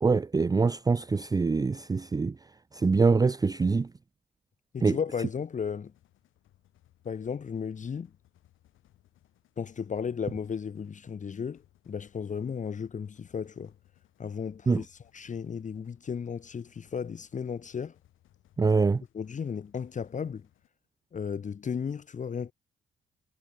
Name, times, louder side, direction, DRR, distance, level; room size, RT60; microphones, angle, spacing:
voice 1, 0.0-2.3 2.7-3.9 4.8-5.0 14.7-14.8 18.6-19.0, right 4 dB, 20° right, 0.5 m, -24 dB
voice 2, 4.7-5.9 7.0-8.1 9.6-13.7 14.2-17.9 19.1-20.5 21.1-22.5, left 6 dB, 40° left, 1.2 m, -35 dB
sound 1, 5.8-20.7, left 13 dB, 80° left, 7.9 m, -65 dB
cardioid pair, 90°, 20 cm